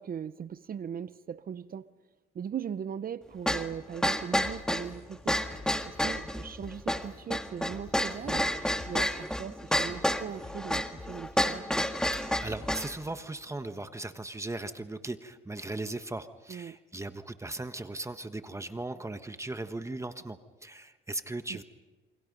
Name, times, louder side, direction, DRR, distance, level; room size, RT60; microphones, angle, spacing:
voice 1, 0.0-1.9 2.3-5.5 5.8-8.5 8.8-11.7 16.5-16.8 21.5-21.6, right 8 dB, 45° right, 0.8 m, -39 dB
sound 1, 3.5-12.9, equal, 5° left, 1.6 m, -30 dB
sound 2, 4.4-13.4, left 3 dB, 30° left, 2.5 m, -50 dB
voice 2, 12.1-21.6, right 2 dB, 15° right, 1.3 m, -38 dB
28.5 x 25.0 x 5.4 m
cardioid pair, 90°, 20 cm